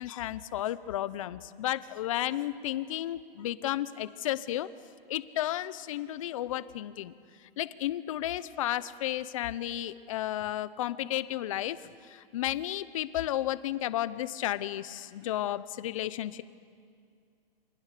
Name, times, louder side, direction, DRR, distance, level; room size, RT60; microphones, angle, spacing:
voice 1, 0.0-4.7 5.1-7.1 7.6-16.4, left 13 dB, 35° left, 15 dB, 0.9 m, -33 dB
29.0 x 24.5 x 6.8 m, 2.3 s
hypercardioid pair, 155°, 29 cm